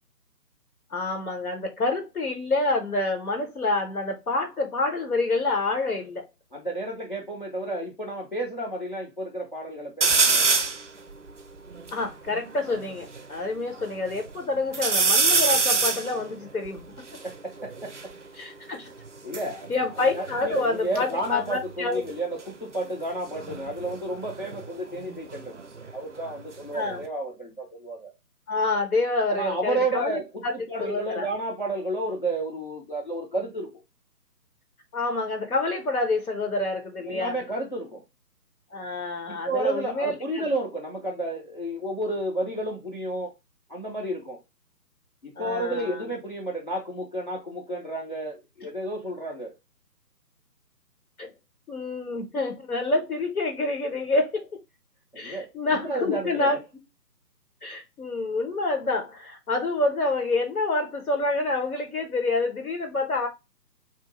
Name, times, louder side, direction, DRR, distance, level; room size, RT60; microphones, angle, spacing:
voice 1, 0.9-6.2 11.9-16.8 18.4-18.9 19.7-22.0 26.7-27.0 28.5-30.1 30.4-30.5 30.8-31.3 34.9-37.4 38.7-40.4 45.4-46.0 51.2-51.3 51.7-54.5 55.2-56.6 57.6-63.3, left 3 dB, 60° left, 1.0 m, -27 dB
voice 2, 6.5-10.6 17.2-17.9 19.2-19.7 20.1-25.6 25.9-28.1 29.3-33.8 37.0-38.0 39.3-43.3 43.7-44.4 45.2-49.5 55.1-56.6, right 1 dB, 30° left, 0.6 m, -31 dB
sound 1, 10.0-10.8 11.4-11.5 11.7-13.2 13.7-14.3 14.7-18.1 19.0-21.0 21.2-21.7 23.3-25.9 26.3-27.1, right 4 dB, 50° right, 0.5 m, -26 dB
2.7 x 2.5 x 3.6 m
figure-of-eight pair, 150°, 49 cm